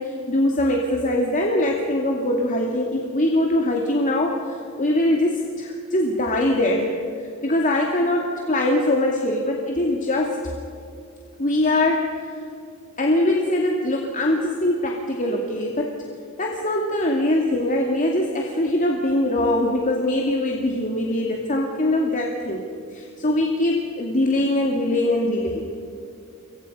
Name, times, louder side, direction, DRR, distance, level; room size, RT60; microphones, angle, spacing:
voice 1, 0.0-6.9 7.2-10.4 11.4-12.3 13.0-15.9 16.4-22.6 22.9-25.6, left 1 dB, 35° left, 0 dB, 2.3 m, -22 dB
27.5 x 24.0 x 5.5 m, 2.5 s
head